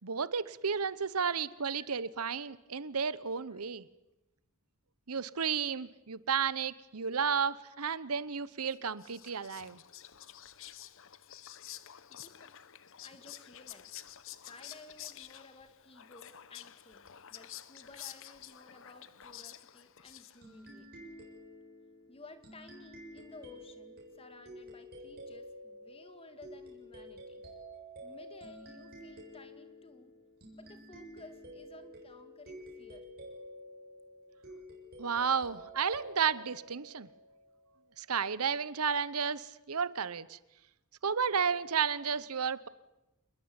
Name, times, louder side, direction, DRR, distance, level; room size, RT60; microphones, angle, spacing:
voice 1, 0.0-3.9 5.1-9.8 35.0-37.1 38.0-40.4 41.0-42.7, right 6 dB, 90° right, 17 dB, 1.0 m, -32 dB
Whispering, 8.7-20.7, left 11 dB, 65° left, 1.0 m, -50 dB
voice 2, 12.1-12.5 13.0-13.9 14.5-21.1 22.1-27.4 28.0-30.1 30.5-33.1, left 2 dB, 25° left, 8 dB, 2.3 m, -55 dB
sound 1, 20.4-37.6, equal, 45° right, 7.6 m, -50 dB
27.5 x 21.0 x 8.9 m, 0.94 s
head